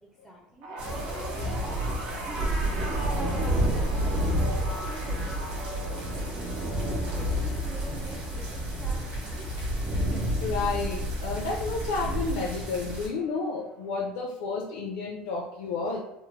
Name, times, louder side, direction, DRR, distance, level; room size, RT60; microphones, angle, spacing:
voice 1, 0.0-0.8 1.1-2.6 3.1-4.3 4.6-6.2 6.5-9.5, right 1 dB, ahead, -3 dB, 0.4 m, -46 dB
sound 1, 0.6-11.1 11.4-11.8 12.9-13.0, right 1 dB, 85° right, 1.0 m, -40 dB
sound 2, 0.8-13.1, equal, 50° right, 1.3 m, -30 dB
voice 2, 10.2-16.0, left 4 dB, 90° left, -1 dB, 0.5 m, -31 dB
3.4 x 2.0 x 3.2 m, 0.87 s
cardioid pair, 160°, 3 cm